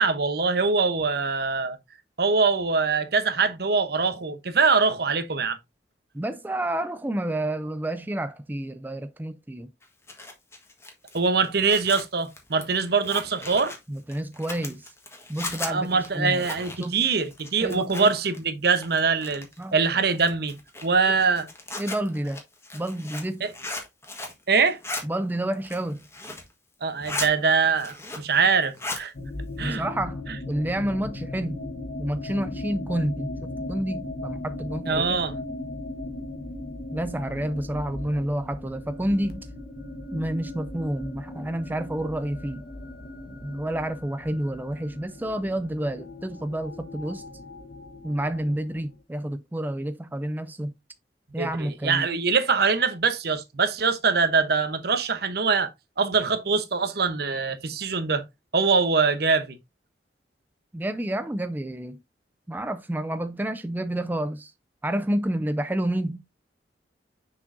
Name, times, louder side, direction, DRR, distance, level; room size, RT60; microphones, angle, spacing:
voice 1, 0.0-1.8 2.2-5.6 11.1-13.7 15.7-19.5 19.7-20.6 20.8-21.5 23.4-23.5 24.5-24.8 26.8-29.1 29.6-29.8 34.9-35.3 51.4-55.7 56.0-58.2 58.5-59.6, right 4 dB, 60° right, 0.9 m, -23 dB
voice 2, 6.1-9.7 13.9-14.9 15.3-16.4 16.8-17.1 17.6-18.1 19.6-19.8 21.1-21.2 21.8-22.4 22.7-23.5 25.0-26.0 29.6-31.7 32.0-35.2 36.9-39.5 40.1-42.7 43.4-47.2 48.0-50.7 51.3-52.1 60.7-62.0 62.5-64.5 64.8-66.3, right 1 dB, 10° right, 0.4 m, -29 dB
Zipper (clothing), 9.8-18.4 18.6-19.6 20.1-24.4 24.7-25.0 25.5-26.5 26.8-27.3 27.7-28.4 28.6-29.0, left 2 dB, 15° left, 1.5 m, -37 dB
sound 1, 29.1-49.0, left 2 dB, 55° left, 1.2 m, -37 dB
6.2 x 6.0 x 2.6 m
head